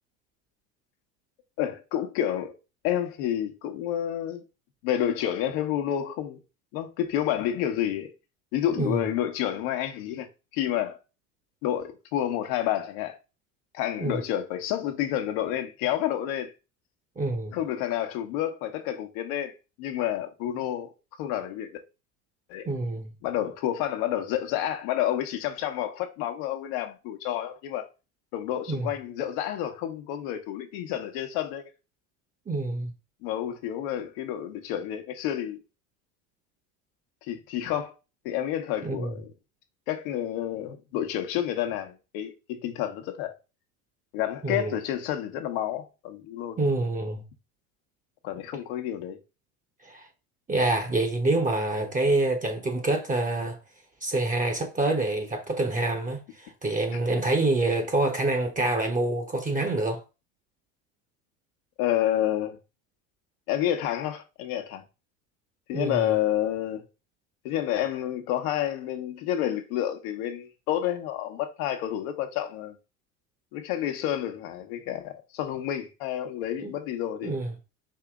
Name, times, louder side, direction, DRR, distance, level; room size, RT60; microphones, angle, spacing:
voice 1, 1.6-2.6 2.8-4.4 4.8-6.4 6.7-8.1 8.5-10.3 10.5-11.0 11.6-13.2 13.7-16.5 17.5-19.5 19.8-20.9 21.2-21.8 22.5-22.7 23.2-27.9 28.3-31.7 33.2-35.6 37.2-37.9 38.2-39.3 39.9-43.4 44.1-46.8 48.2-49.2 61.8-62.6 63.5-64.8 65.7-66.8 67.4-72.8 73.5-77.4, left 11 dB, 70° left, 1.1 m, -29 dB
voice 2, 17.2-17.5 22.7-23.1 28.7-28.9 32.5-32.9 38.8-39.1 44.4-44.8 46.6-47.2 49.8-50.1 50.5-53.6 54.0-60.0 65.7-66.1 76.6-76.7 77.2-77.5, right 2 dB, 20° right, 1.0 m, -26 dB
4.8 x 2.9 x 3.6 m
hypercardioid pair, 85°, 43 cm